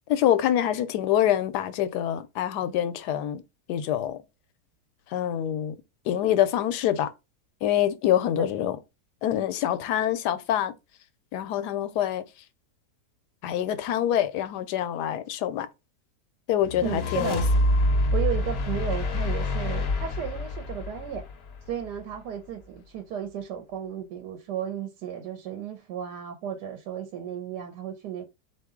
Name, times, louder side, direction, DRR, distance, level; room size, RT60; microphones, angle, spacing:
voice 1, 0.1-3.4 3.7-4.2 5.1-5.8 6.0-7.1 7.6-8.8 9.2-10.7 11.3-12.2 13.4-15.7 16.5-17.4, left 11 dB, 80° left, 1.1 m, -25 dB
sound 1, 16.6-22.0, left 1 dB, 55° left, 0.7 m, -26 dB
voice 2, 16.8-17.5 18.1-21.2 21.7-28.3, right 9 dB, 85° right, 1.2 m, -34 dB
3.8 x 2.9 x 3.6 m
omnidirectional pair, 1.7 m